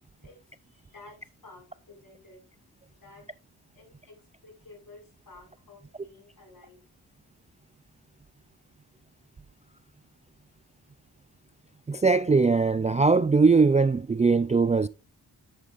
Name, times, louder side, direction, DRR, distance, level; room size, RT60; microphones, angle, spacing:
voice 1, 0.2-2.4 2.9-3.3 3.7-6.8, left 3 dB, 55° left, 5.8 m, -52 dB
voice 2, 11.9-14.9, right 4 dB, 20° right, 0.3 m, -21 dB
10.0 x 8.8 x 2.5 m
cardioid pair, 65°, 40 cm